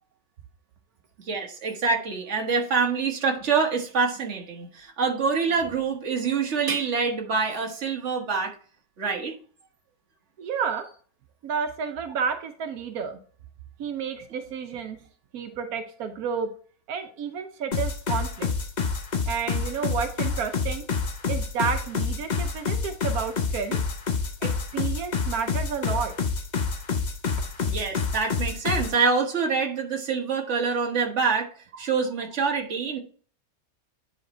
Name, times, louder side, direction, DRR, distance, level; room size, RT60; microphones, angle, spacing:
voice 1, 1.3-8.5 9.0-9.3 27.6-31.5 31.8-33.0, right 5 dB, 55° right, 2 dB, 1.5 m, -26 dB
voice 2, 10.4-10.8 11.4-13.2 13.8-15.0 15.3-16.5 16.9-18.5 19.3-20.8 21.3-23.8 24.4-26.1, right 6 dB, 85° right, 7 dB, 1.3 m, -31 dB
sound 1, 17.7-29.0, left 5 dB, 40° left, 0.7 m, -28 dB
9.8 x 3.5 x 4.2 m, 0.43 s
omnidirectional pair, 1.5 m